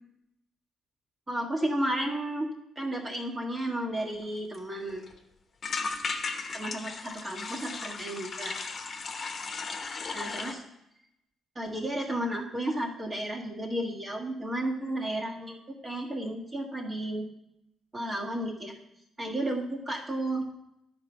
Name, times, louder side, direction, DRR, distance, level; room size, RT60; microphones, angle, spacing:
voice 1, 1.3-5.1 6.5-8.5 10.1-10.6 11.5-17.2 17.9-18.8 19.2-20.5, right 1 dB, 25° right, -2 dB, 1.6 m, -33 dB
sound 1, 4.2-4.3 4.5-4.6 4.9-5.1 5.6-10.5, left 4 dB, 40° left, 0.9 m, -36 dB
10.5 x 4.4 x 5.4 m, 0.83 s
cardioid pair, 90°, 0 cm